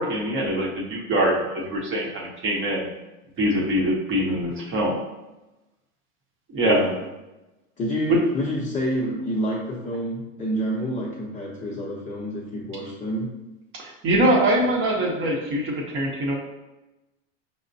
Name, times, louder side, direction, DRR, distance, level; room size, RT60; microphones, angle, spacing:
voice 1, 0.0-2.9 3.4-5.0 6.5-6.8 8.1-8.2 13.8-16.3, right 1 dB, 35° right, -1 dB, 0.8 m, -23 dB
voice 2, 6.6-7.0 7.8-13.3, equal, 20° left, -4 dB, 0.6 m, -28 dB
5.0 x 2.1 x 2.6 m, 1.0 s
supercardioid pair, 130°, 38 cm